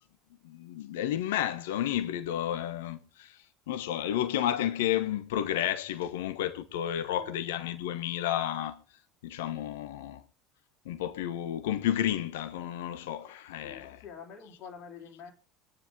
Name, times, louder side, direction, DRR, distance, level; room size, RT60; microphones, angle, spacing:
voice 1, 0.4-8.8 9.2-10.2 10.8-14.0, left 11 dB, 75° left, 1.2 m, -31 dB
voice 2, 7.2-7.5 13.6-15.3, left 6 dB, 55° left, 3.1 m, -47 dB
22.5 x 9.8 x 3.7 m
hypercardioid pair, 65°, 0 cm